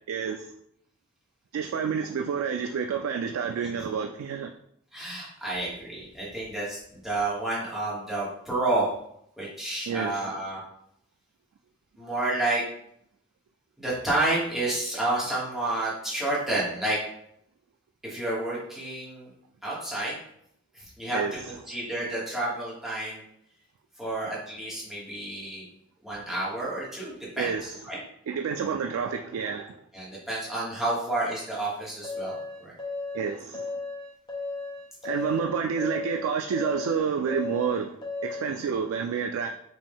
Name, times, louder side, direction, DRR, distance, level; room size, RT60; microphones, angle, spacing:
voice 1, 0.1-0.4 1.5-4.5 9.9-10.2 21.1-21.3 27.4-27.6 28.3-29.8 33.1-33.7 35.0-37.9 38.2-39.5, right 6 dB, 90° right, 5 dB, 0.3 m, -29 dB
voice 2, 4.9-8.9 9.4-10.6 12.0-12.6 13.8-17.0 18.0-19.3 19.6-20.2 20.7-23.2 24.0-25.7 26.0-28.0 29.2-29.4 29.9-32.7, right 2 dB, ahead, -8 dB, 1.3 m, -30 dB
sound 1, 32.0-38.6, left 3 dB, 20° left, 0.9 m, -35 dB
5.2 x 2.6 x 3.5 m, 0.73 s
head